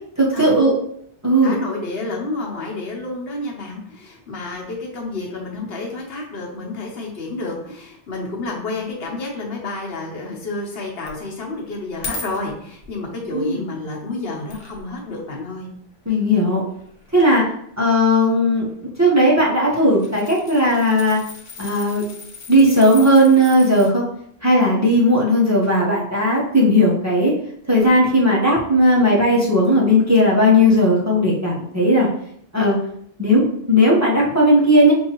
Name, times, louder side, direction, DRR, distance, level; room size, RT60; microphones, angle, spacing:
voice 1, 0.2-0.8 1.2-1.6 13.3-13.6 16.1-16.6 17.1-17.4 17.8-18.7 19.0-21.2 21.6-22.0 22.5-24.0 24.4-27.3 27.7-32.1 32.5-32.8 33.2-34.9, equal, 20° right, -5 dB, 0.8 m, -16 dB
voice 2, 1.4-15.7, left 2 dB, 75° left, -1 dB, 1.2 m, -30 dB
sound 1, 11.1-11.2 11.6-13.0 13.7-13.8 14.5-15.0 15.3-15.4 16.2-17.3 18.4-18.7 19.0-19.1 19.6-23.9 27.8-27.9, left 3 dB, 55° left, 1.0 m, -37 dB
5.8 x 2.7 x 2.9 m, 0.67 s
omnidirectional pair, 1.0 m